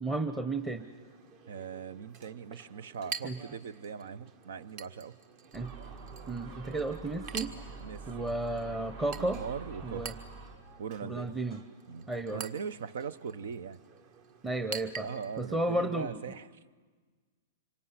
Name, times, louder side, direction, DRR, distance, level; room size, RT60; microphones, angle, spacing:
voice 1, 0.0-0.8 3.2-3.4 5.5-5.7 6.3-7.5 8.1-9.4 9.8-10.1 11.0-11.6 12.1-12.4 14.4-15.1 15.4-16.2, right 2 dB, 10° right, 7 dB, 1.0 m, -33 dB
Chink clink, 0.6-15.6, right 6 dB, 45° right, 1.6 m, -47 dB
voice 2, 1.5-5.2 7.8-8.3 9.1-10.0 10.8-11.4 11.9-13.8 15.0-16.5, right 6 dB, 75° right, 19 dB, 1.0 m, -40 dB
Gull seagull, 5.5-10.6, right 4 dB, 60° right, 5.5 m, -46 dB
26.0 x 23.5 x 9.8 m, 1.4 s
hypercardioid pair, 140°, 0 cm